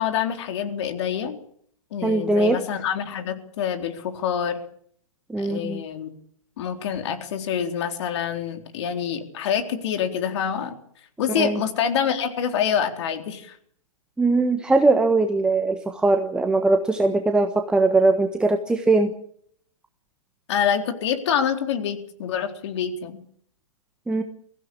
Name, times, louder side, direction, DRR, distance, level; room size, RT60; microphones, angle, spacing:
voice 1, 0.0-1.4 1.9-4.6 5.4-6.1 6.6-10.8 11.2-13.6 20.5-23.2, left 8 dB, 50° left, 6 dB, 4.0 m, -26 dB
voice 2, 2.0-2.6 5.3-5.8 11.4-11.6 14.2-19.1 24.1-24.2, right 2 dB, 5° right, 6 dB, 1.4 m, -20 dB
23.5 x 16.5 x 8.7 m, 0.64 s
hypercardioid pair, 135°, 18 cm